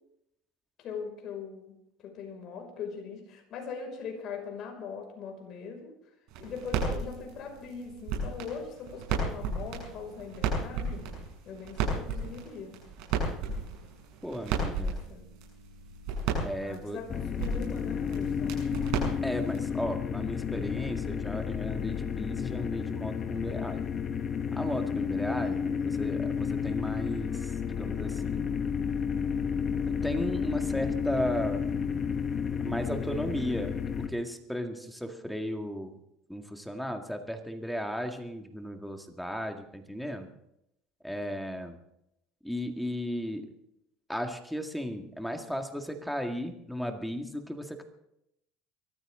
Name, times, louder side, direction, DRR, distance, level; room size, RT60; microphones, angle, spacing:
voice 1, 0.8-1.8 2.0-5.9 6.4-11.1 11.4-12.8 14.3-15.2 16.6-18.7, left 5 dB, 50° left, 2 dB, 5.8 m, -41 dB
sound 1, 6.3-19.7, right 4 dB, 70° right, 7.5 m, -34 dB
voice 2, 14.2-15.0 16.4-17.0 19.2-23.9 24.5-27.5 27.8-28.5 29.9-31.7 32.6-35.9 36.3-40.3 41.0-41.8 42.4-43.5 44.1-47.8, equal, ahead, 4 dB, 2.0 m, -35 dB
sound 2, 17.1-34.1, left 7 dB, 35° left, 1.3 m, -31 dB
23.5 x 14.0 x 3.8 m, 0.81 s
supercardioid pair, 120°, 0 cm